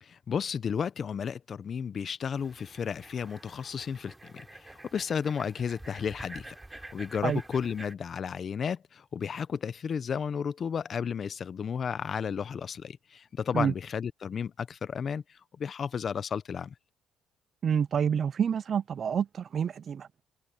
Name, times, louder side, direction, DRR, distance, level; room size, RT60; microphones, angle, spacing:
voice 1, 0.0-16.7, left 7 dB, 45° left, 0.8 m, -33 dB
sound 1, 2.4-7.9, right 2 dB, 10° right, 5.9 m, -48 dB
voice 2, 17.6-20.1, right 7 dB, 50° right, 0.4 m, -28 dB
cardioid pair, 95°, 0 cm